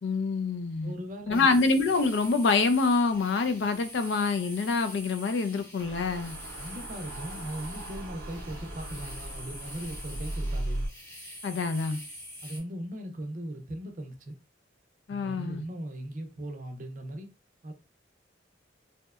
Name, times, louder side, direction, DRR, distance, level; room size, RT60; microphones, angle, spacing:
voice 1, 0.0-0.9 1.3-6.3 11.4-12.0 15.1-15.6, left 4 dB, 70° left, 0.4 m, -26 dB
voice 2, 0.8-1.5 6.6-10.9 12.4-14.4 15.1-17.3 17.6-17.7, right 1 dB, 45° right, 0.5 m, -39 dB
sound 1, 1.3-12.6, left 1 dB, 15° left, 0.8 m, -45 dB
sound 2, 5.8-10.9, right 1 dB, 90° right, 0.6 m, -37 dB
2.7 x 2.1 x 2.3 m
head